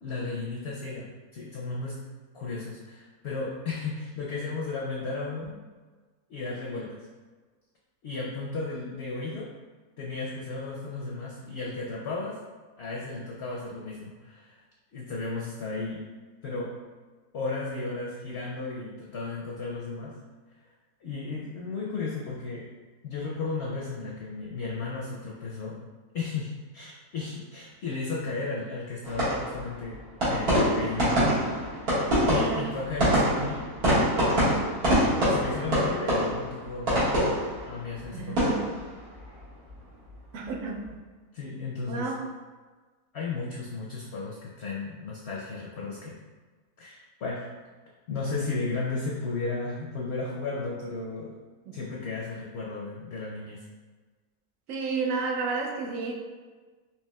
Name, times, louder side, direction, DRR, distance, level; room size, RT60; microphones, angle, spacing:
voice 1, 0.0-2.1 2.3-5.5 6.3-7.1 8.0-9.5 10.0-12.4 12.8-14.6 14.9-16.1 16.4-16.8 17.3-20.2 21.0-22.7 23.0-25.8 26.1-31.5 32.3-33.6 34.8-38.5 41.3-42.1 43.1-46.1 46.8-47.5 48.1-51.3 51.7-53.6, left 3 dB, 65° left, -3 dB, 0.6 m, -34 dB
sound 1, 29.0-40.2 40.4-40.9, equal, 85° right, 2.1 m, -26 dB
voice 2, 32.3-32.7 38.1-38.7 40.3-40.9 41.9-42.2 51.7-51.8 54.7-56.1, right 4 dB, 70° right, 0 dB, 0.9 m, -31 dB
4.6 x 2.8 x 2.2 m, 1.4 s
omnidirectional pair, 1.5 m